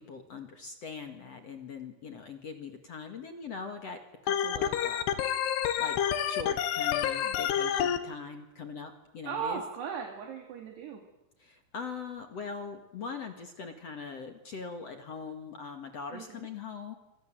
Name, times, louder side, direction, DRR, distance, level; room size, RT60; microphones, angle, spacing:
voice 1, 0.0-5.2 5.8-6.0 6.3-9.6 11.4-16.9, left 5 dB, 50° left, 5 dB, 2.0 m, -41 dB
Organ, 4.3-8.0, left 9 dB, 70° left, 3.1 m, -28 dB
voice 2, 9.2-11.0 16.1-16.5, right 7 dB, 65° right, 3 dB, 4.3 m, -37 dB
27.0 x 27.0 x 7.7 m, 0.95 s
omnidirectional pair, 5.4 m